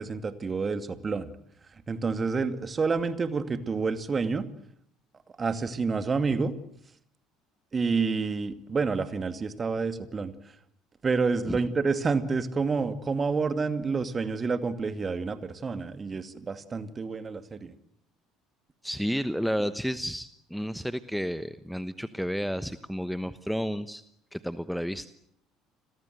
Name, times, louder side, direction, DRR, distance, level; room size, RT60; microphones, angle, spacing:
voice 1, 0.0-1.3 1.9-4.5 5.4-6.5 7.7-10.3 11.0-17.7, right 4 dB, 30° right, 10 dB, 2.4 m, -28 dB
voice 2, 18.8-24.0 24.3-25.1, equal, ahead, 14 dB, 1.1 m, -31 dB
30.0 x 22.0 x 8.1 m, 0.72 s
figure-of-eight pair, 60°, 0 cm